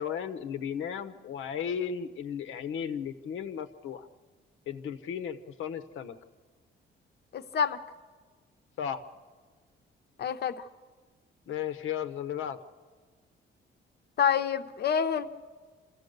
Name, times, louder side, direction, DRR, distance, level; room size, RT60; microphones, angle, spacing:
voice 1, 0.0-4.1 4.7-6.1 8.8-9.0 11.5-12.6, left 8 dB, 90° left, 10 dB, 1.1 m, -35 dB
voice 2, 7.3-7.8 10.2-10.5 14.2-15.3, left 7 dB, 55° left, 10 dB, 0.9 m, -27 dB
26.5 x 15.5 x 6.7 m, 1.5 s
cardioid pair, 165°, 20 cm